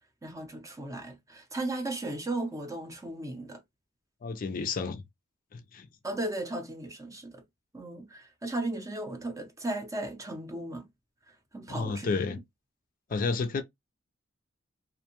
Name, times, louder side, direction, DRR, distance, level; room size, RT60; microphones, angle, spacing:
voice 1, 0.2-3.6 6.0-7.4 7.7-10.9 11.5-12.2, right 2 dB, 15° right, 0.5 m, -36 dB
voice 2, 4.2-5.0 5.5-5.9 11.7-12.4 13.1-13.6, left 4 dB, 40° left, 0.4 m, -31 dB
2.5 x 2.2 x 2.8 m
head